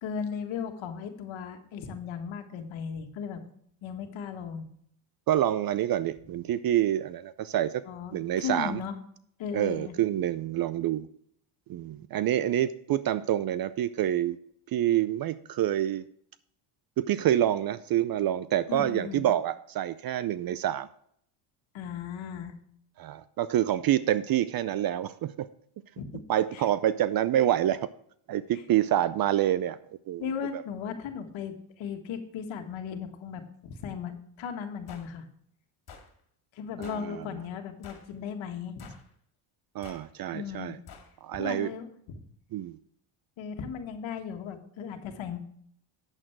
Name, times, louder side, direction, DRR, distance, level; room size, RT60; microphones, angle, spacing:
voice 1, 0.0-3.4 3.8-4.7 7.9-8.9 9.4-10.0 18.7-19.2 21.7-22.5 26.0-26.1 26.5-26.6 30.2-35.2 36.5-38.9 40.3-40.8 41.3-41.9 43.4-45.4, left 7 dB, 65° left, 6 dB, 1.8 m, -36 dB
voice 2, 5.3-7.8 8.1-8.8 9.5-11.1 11.7-14.4 14.7-16.0 17.0-20.9 23.0-25.5 26.3-27.9 28.3-29.8 30.1-30.2 30.5-30.6 36.8-37.2 39.7-40.8 41.2-41.7 42.5-42.8, right 12 dB, 45° right, 16 dB, 0.5 m, -27 dB
sound 1, 34.9-35.1 35.9-36.1 36.8-37.1 37.8-38.1 38.8-39.1 39.8-40.1 40.9-41.1, left 6 dB, 50° left, 2.5 m, -48 dB
9.0 x 7.6 x 4.5 m, 0.66 s
cardioid pair, 100°, 50 cm